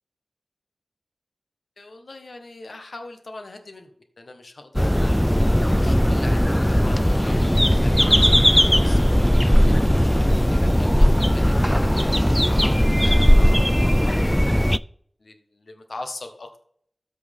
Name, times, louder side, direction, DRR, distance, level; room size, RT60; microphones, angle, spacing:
voice 1, 1.8-3.9 4.2-5.3 5.8-14.8 15.2-16.6, left 2 dB, 75° left, 6 dB, 1.4 m, -41 dB
sound 1, 4.8-14.8, equal, 5° left, 0.3 m, -18 dB
13.5 x 6.1 x 3.6 m, 0.63 s
cardioid pair, 45°, 0 cm